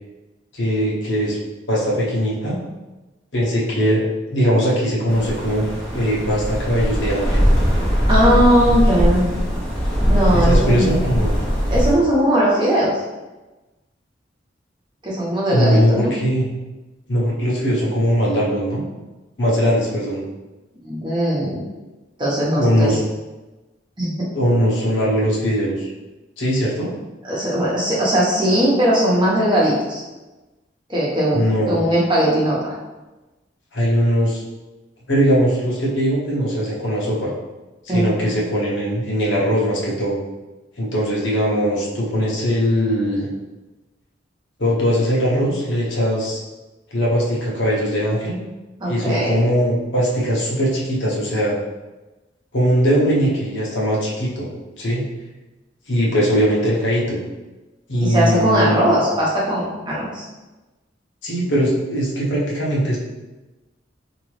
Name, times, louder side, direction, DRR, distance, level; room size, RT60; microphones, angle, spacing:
voice 1, 0.5-1.4 1.7-2.6 3.3-4.0 4.3-5.7 5.9-7.4 10.3-11.4 15.5-16.5 17.1-18.8 19.4-20.2 22.5-23.0 24.3-25.9 26.4-26.9 31.3-31.8 33.7-34.4 35.1-37.3 37.9-40.2 40.8-43.3 44.6-46.4 46.9-48.4 48.9-51.6 52.5-54.5 54.8-55.1 55.9-57.2 57.9-59.0 61.2-63.0, equal, 80° left, -5 dB, 1.0 m, -20 dB
sound 1, 5.1-11.9, equal, 5° left, 0.9 m, -20 dB
voice 2, 8.1-9.3 10.1-10.9 11.7-13.0 15.0-16.1 20.8-21.6 22.2-22.9 24.0-24.3 27.2-30.0 30.9-32.7 37.9-38.1 48.8-49.4 58.0-60.3, equal, 25° right, -6 dB, 1.1 m, -19 dB
3.7 x 2.9 x 3.2 m, 1.1 s
head